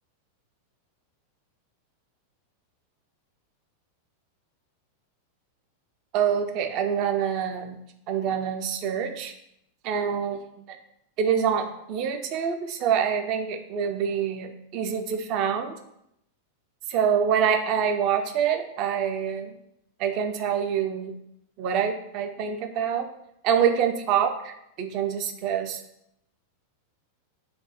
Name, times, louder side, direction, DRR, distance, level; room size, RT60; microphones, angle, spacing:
voice 1, 6.1-7.8 8.1-9.3 9.8-10.4 10.7-10.8 11.2-15.7 16.9-19.5 20.0-21.1 21.6-23.1 23.4-25.8, right 8 dB, 40° right, 6 dB, 0.4 m, -26 dB
4.1 x 2.1 x 4.1 m, 0.78 s
figure-of-eight pair, 90°, 0 cm